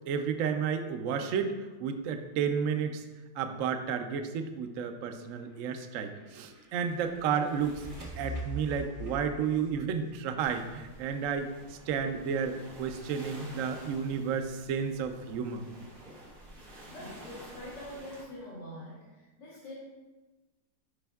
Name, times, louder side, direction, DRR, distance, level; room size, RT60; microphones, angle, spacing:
voice 1, 0.1-3.0 3.4-7.9 8.2-15.7, right 7 dB, 75° right, 7 dB, 0.7 m, -32 dB
sound 1, 5.4-11.2, right 1 dB, 20° right, 1.1 m, -44 dB
sound 2, 10.4-18.2, right 1 dB, 50° right, 1.9 m, -50 dB
voice 2, 16.9-19.7, left 1 dB, 80° left, -7 dB, 2.3 m, -45 dB
10.0 x 5.2 x 2.3 m, 1.2 s
omnidirectional pair, 2.0 m